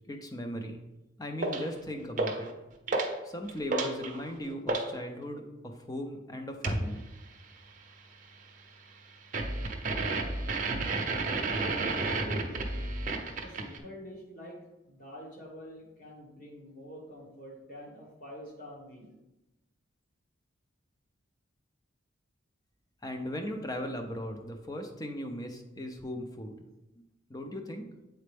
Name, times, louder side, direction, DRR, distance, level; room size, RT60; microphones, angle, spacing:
voice 1, 0.1-0.8 1.2-2.5 3.2-7.0 23.0-26.7 27.3-27.8, left 1 dB, 20° left, 4 dB, 0.6 m, -38 dB
sound 1, 1.4-1.7 2.2-2.5 2.9-3.2 3.5-4.9 6.6-6.9 9.3-13.8, right 3 dB, 40° right, 0.7 m, -31 dB
voice 2, 11.7-12.9 13.4-14.6 14.9-19.1, equal, 40° left, -2 dB, 1.5 m, -46 dB
7.9 x 4.2 x 3.4 m, 0.98 s
head